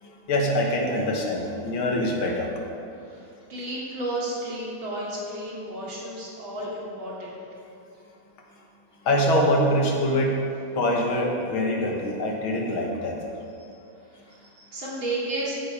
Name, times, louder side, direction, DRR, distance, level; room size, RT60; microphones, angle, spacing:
voice 1, 0.0-2.5 9.0-10.4 10.7-13.2, left 1 dB, 75° left, 0 dB, 2.3 m, -24 dB
voice 2, 3.1-7.4 7.8-7.9 14.2-15.5, right 1 dB, 70° right, -5 dB, 3.4 m, -33 dB
14.0 x 8.1 x 4.9 m, 2.6 s
omnidirectional pair, 2.3 m